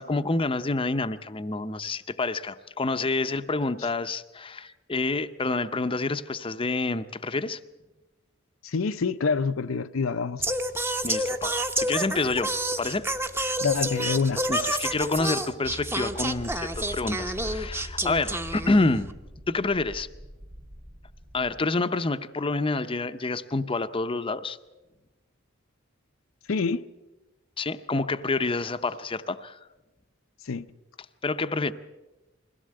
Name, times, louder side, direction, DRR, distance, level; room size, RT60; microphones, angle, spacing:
voice 1, 0.0-7.6 11.0-13.1 14.5-19.1 19.5-20.1 21.3-24.6 27.6-29.6 31.2-31.7, left 3 dB, 25° left, 0.6 m, -28 dB
voice 2, 8.6-10.4 13.6-14.4 26.5-26.8 30.5-30.7, left 5 dB, 75° left, 0.6 m, -26 dB
Singing, 10.4-19.1, right 1 dB, 10° right, 0.9 m, -29 dB
sound 1, 16.3-21.7, equal, 45° right, 2.6 m, -45 dB
21.5 x 16.5 x 7.6 m
head